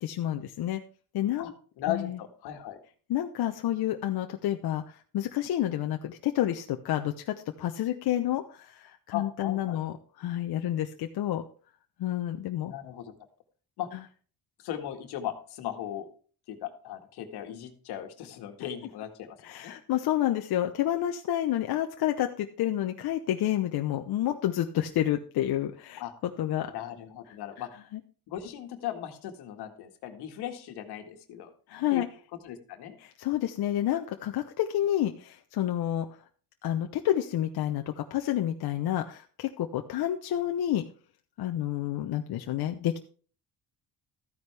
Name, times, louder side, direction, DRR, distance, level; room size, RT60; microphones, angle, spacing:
voice 1, 0.0-0.8 1.1-1.5 1.9-2.2 3.1-11.4 12.0-12.7 19.4-26.7 27.6-27.7 27.9-28.0 31.7-32.1 33.0-36.1 36.6-40.8 41.4-43.0, left 12 dB, 70° left, 5 dB, 0.9 m, -29 dB
voice 2, 1.8-2.8 9.1-9.8 12.6-13.2 13.8-13.9 14.6-16.1 16.5-19.7 26.0-26.1 26.7-27.7 28.3-31.5 31.9-32.0 32.4-33.0, left 11 dB, 90° left, 6 dB, 1.8 m, -37 dB
13.5 x 9.6 x 3.4 m, 0.41 s
cardioid pair, 90°, 38 cm